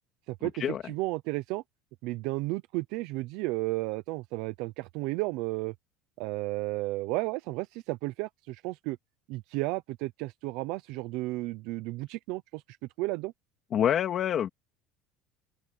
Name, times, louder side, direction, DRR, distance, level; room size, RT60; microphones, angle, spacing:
voice 1, 0.3-1.6 2.0-5.7 6.2-9.0 9.3-12.6 13.0-13.3, right 21 dB, 60° right, 0.7 m, -33 dB
voice 2, 13.7-14.5, left 9 dB, 30° left, 2.4 m, -26 dB
open air
cardioid pair, 165°, 0 cm